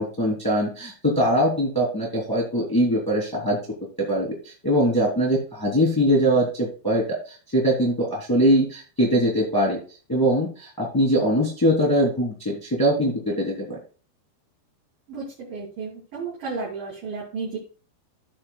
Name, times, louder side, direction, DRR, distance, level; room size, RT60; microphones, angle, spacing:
voice 1, 0.0-3.6 4.0-9.8 10.1-13.8, equal, 5° left, -3 dB, 2.1 m, -22 dB
voice 2, 15.1-17.6, right 4 dB, 50° right, -6 dB, 4.1 m, -33 dB
16.0 x 5.6 x 2.3 m, 0.38 s
omnidirectional pair, 5.2 m